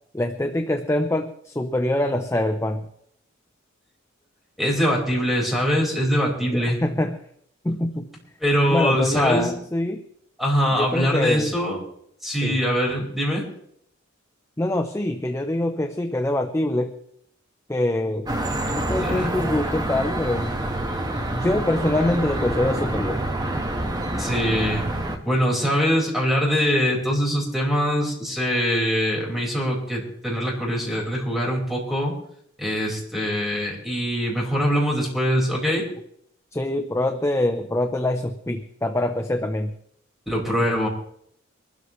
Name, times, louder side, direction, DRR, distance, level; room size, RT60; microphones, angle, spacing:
voice 1, 0.1-2.9 6.4-7.2 7.6-8.1 8.7-10.0 10.7-11.5 12.4-12.6 14.6-17.0 17.7-18.3 18.8-20.6 21.3-23.2 36.5-39.7, left 1 dB, 15° left, 6 dB, 0.7 m, -24 dB
voice 2, 4.6-6.8 8.4-9.5 10.4-11.8 12.2-13.4 19.0-19.3 24.2-24.8 25.1-32.1 32.6-35.8 40.3-40.9, equal, ahead, -2 dB, 5.0 m, -23 dB
sound 1, 18.3-25.2, right 1 dB, 20° right, 1.4 m, -27 dB
24.0 x 13.0 x 3.2 m, 0.70 s
head